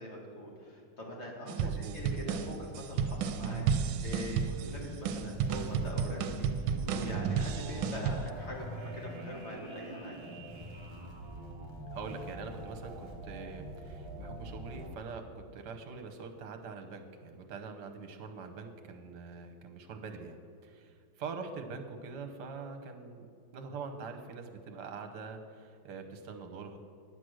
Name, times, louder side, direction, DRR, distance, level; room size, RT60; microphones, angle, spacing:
voice 1, 0.0-10.2, equal, 35° left, -2 dB, 2.2 m, -43 dB
sound 1, 1.5-8.3, right 6 dB, 85° right, 1.4 m, -32 dB
voice 2, 1.6-2.0 11.9-15.2 15.5-26.8, right 4 dB, 60° right, 6 dB, 1.4 m, -44 dB
sound 2, 2.0-14.9, right 1 dB, 25° right, 0.6 m, -45 dB
10.5 x 7.9 x 6.3 m, 2.4 s
omnidirectional pair, 2.3 m